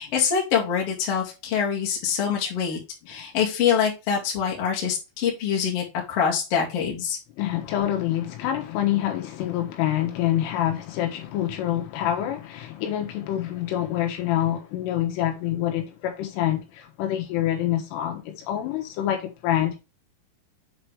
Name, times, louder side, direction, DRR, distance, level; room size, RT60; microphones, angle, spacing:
voice 1, 0.0-2.8 3.1-7.2, left 7 dB, 45° left, 2.2 m, -25 dB
voice 2, 7.4-19.8, left 12 dB, 80° left, 3.7 m, -26 dB
7.9 x 4.5 x 3.3 m
omnidirectional pair, 5.7 m